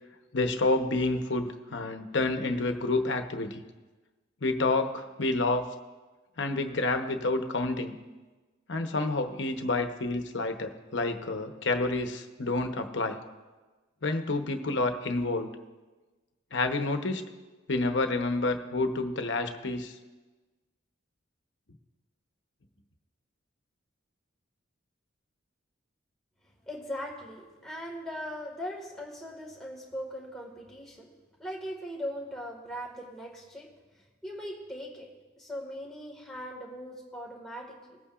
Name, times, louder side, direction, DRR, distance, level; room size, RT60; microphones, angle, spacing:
voice 1, 0.3-3.6 4.4-5.6 6.4-8.0 8.7-13.2 14.0-15.5 16.5-17.3 17.7-19.9, left 2 dB, 70° left, 6 dB, 0.9 m, -29 dB
voice 2, 26.7-31.1 31.4-33.7 34.2-35.1 35.4-38.0, equal, ahead, -2 dB, 1.8 m, -39 dB
22.0 x 8.5 x 2.5 m, 1.3 s
head